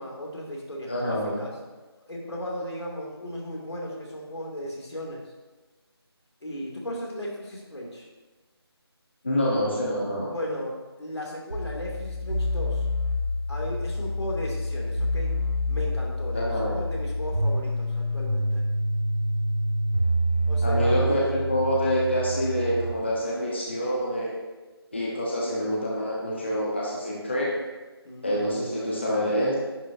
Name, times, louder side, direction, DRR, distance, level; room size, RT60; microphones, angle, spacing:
voice 1, 0.0-1.5 2.1-5.2 6.4-8.1 10.3-12.9 13.5-15.4 15.7-18.6 20.5-21.0 28.0-29.0, left 1 dB, 85° left, -2 dB, 2.4 m, -36 dB
voice 2, 0.9-1.4 9.2-10.3 16.3-16.8 20.6-24.3 24.9-27.5 28.2-29.5, equal, 25° left, -5 dB, 0.9 m, -26 dB
sound 1, 11.5-22.9, equal, 35° right, 1.0 m, -27 dB
9.9 x 6.0 x 2.6 m, 1.2 s
figure-of-eight pair, 180°, 14 cm